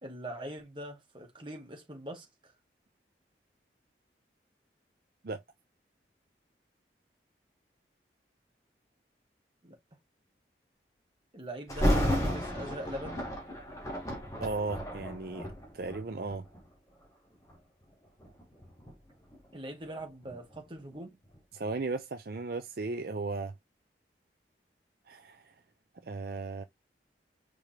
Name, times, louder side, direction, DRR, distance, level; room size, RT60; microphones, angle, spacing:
voice 1, 0.0-2.5 9.6-9.8 11.3-13.2 19.5-21.2, right 1 dB, 25° right, 1.8 m, -42 dB
Thunder, 11.7-16.7 17.3-17.6 18.2-21.0 21.3-21.4, equal, 20° left, 2.0 m, -33 dB
voice 2, 14.4-15.5 15.7-16.4 21.5-23.5 25.1-25.5 26.0-26.6, right 3 dB, 55° right, 0.5 m, -36 dB
5.0 x 3.4 x 2.9 m
head